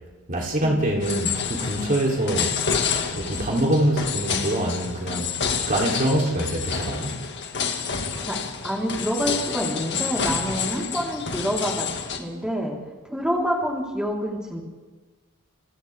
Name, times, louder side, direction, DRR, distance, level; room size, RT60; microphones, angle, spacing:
voice 1, 0.3-2.6 3.1-5.3 5.7-7.2, right 1 dB, 40° right, -2 dB, 3.6 m, -24 dB
sound 1, 1.0-12.2, left 6 dB, 55° left, 2.1 m, -29 dB
voice 2, 8.6-11.9 12.2-12.8 13.0-14.6, equal, 5° right, -3 dB, 4.2 m, -27 dB
29.5 x 28.0 x 3.7 m, 1.3 s
head